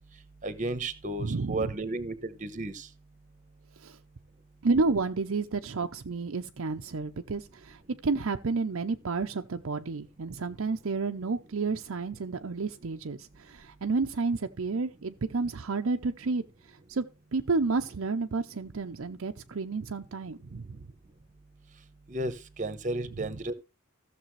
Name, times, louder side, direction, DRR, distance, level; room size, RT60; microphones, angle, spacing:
voice 1, 0.4-2.9 22.1-22.3 22.6-23.5, right 2 dB, 35° right, 1.0 m, -33 dB
voice 2, 1.2-1.7 3.8-4.0 4.6-16.4 16.9-17.0 17.3-20.9 23.2-23.3, right 4 dB, 60° right, 0.6 m, -31 dB
15.0 x 6.8 x 3.2 m
head